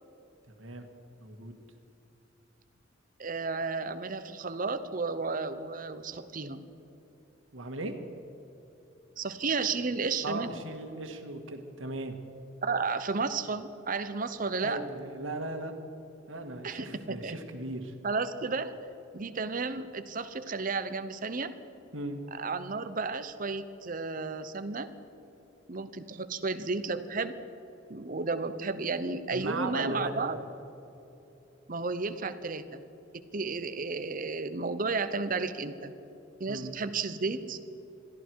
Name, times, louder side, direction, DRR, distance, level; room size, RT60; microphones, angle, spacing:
voice 1, 0.5-0.9 1.2-1.6 7.5-8.0 10.2-12.2 14.6-15.8 16.3-17.9 21.9-22.2 29.3-30.3 36.5-36.7, right 2 dB, 85° right, 5 dB, 1.8 m, -37 dB
voice 2, 3.2-6.7 9.2-10.6 12.6-14.9 16.6-17.4 18.0-18.8 19.1-21.5 22.3-24.9 25.7-27.4 27.9-30.4 31.7-32.8 33.3-35.9 36.4-37.6, right 4 dB, 45° right, 11 dB, 0.9 m, -33 dB
22.0 x 14.0 x 4.7 m, 3.0 s
head